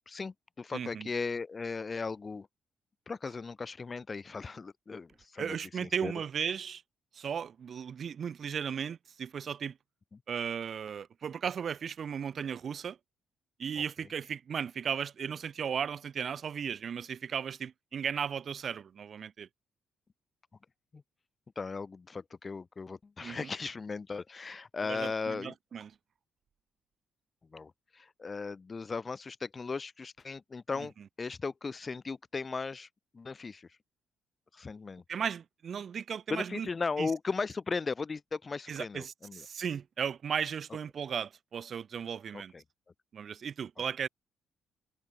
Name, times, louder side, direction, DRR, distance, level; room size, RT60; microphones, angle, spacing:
voice 1, 0.1-2.5 3.1-6.1 10.1-10.2 20.9-21.0 21.6-25.5 27.5-32.9 33.1-33.8 34.5-35.0 36.3-39.5 42.3-42.6, left 4 dB, 30° left, 0.3 m, -37 dB
voice 2, 0.7-1.1 5.4-6.8 7.1-9.8 10.3-13.0 13.6-19.5 23.2-23.5 24.9-25.9 35.1-36.7 37.0-37.1 38.7-42.5 43.1-44.1, right 7 dB, 50° right, 1.3 m, -36 dB
cardioid pair, 90°, 0 cm